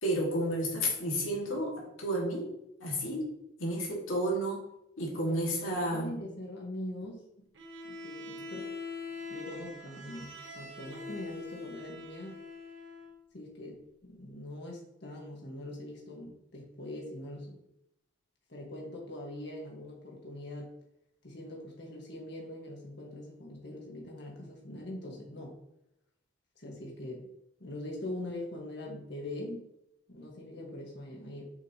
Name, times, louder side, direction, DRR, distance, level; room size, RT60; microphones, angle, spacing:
voice 1, 0.0-2.5 2.8-3.3 3.6-4.6 5.0-6.2, equal, 85° left, -2 dB, 2.0 m, -31 dB
voice 2, 5.2-7.2 7.8-8.7 9.3-12.4 13.3-17.6 18.5-20.7 21.2-25.5 26.6-27.3 27.6-29.7 30.1-31.5, left 1 dB, 55° left, -2 dB, 1.6 m, -42 dB
Bowed string instrument, 7.5-13.2, left 3 dB, 70° right, 0.9 m, -43 dB
7.0 x 5.1 x 2.9 m, 0.81 s
head